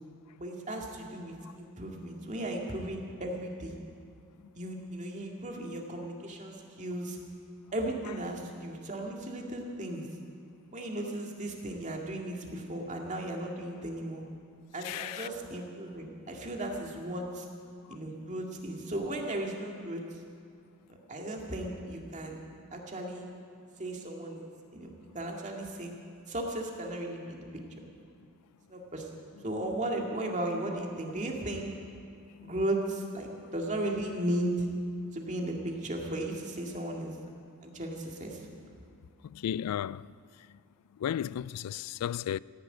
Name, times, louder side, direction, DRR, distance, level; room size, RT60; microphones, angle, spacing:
voice 1, 0.4-3.7 4.5-7.2 7.7-10.1 10.7-14.2 14.7-17.5 17.9-20.0 20.9-22.4 22.7-23.3 23.8-24.4 24.7-26.0 26.3-27.4 27.8-27.9 28.7-29.1 29.4-31.7 32.4-34.7 35.1-37.2 37.6-38.5, right 1 dB, 35° right, 2.0 m, -36 dB
voice 2, 14.8-15.3 32.4-32.5 39.2-40.1 41.0-42.4, left 10 dB, 90° left, 0.3 m, -34 dB
15.0 x 10.5 x 9.1 m
head